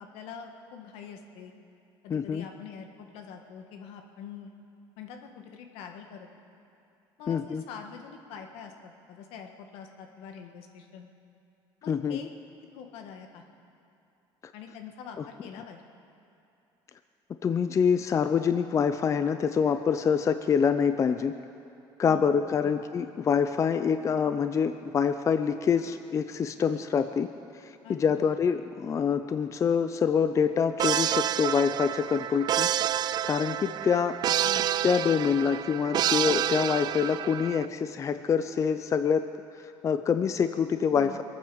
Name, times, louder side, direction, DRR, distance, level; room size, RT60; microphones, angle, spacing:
voice 1, 0.0-1.5 2.0-4.5 5.0-6.3 7.2-11.1 11.8-12.3 12.6-13.4 14.5-15.8 22.0-22.3 22.6-22.8 27.8-28.3 34.4-34.7 40.9-41.2, left 7 dB, 80° left, 4 dB, 1.7 m, -45 dB
voice 2, 2.1-2.5 7.3-7.6 11.9-12.2 17.4-21.4 22.0-27.3 27.6-32.7 33.2-34.3 34.8-39.3 39.8-41.2, left 6 dB, 30° left, 9 dB, 0.5 m, -26 dB
sound 1, 30.8-37.7, right 11 dB, 45° right, 0.4 m, -29 dB
22.0 x 9.2 x 7.1 m, 2.7 s
cardioid pair, 120°, 10 cm